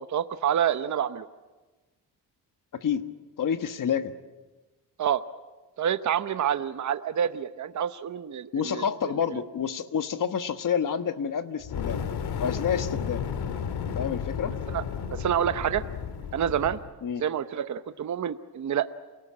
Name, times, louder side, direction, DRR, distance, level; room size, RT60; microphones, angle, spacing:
voice 1, 0.1-1.3 5.0-5.2 5.8-8.8 14.7-14.8 15.1-15.8 16.3-16.8 17.2-18.9, right 9 dB, 45° right, 11 dB, 0.9 m, -27 dB
voice 2, 2.7-3.0 3.4-4.1 8.5-12.0 12.4-13.3 13.9-14.5 17.0-17.2, left 7 dB, 50° left, 10 dB, 1.5 m, -28 dB
Fire, 11.6-16.9, left 7 dB, 70° left, 1.9 m, -33 dB
28.5 x 19.0 x 8.7 m, 1.2 s
cardioid pair, 115°, 41 cm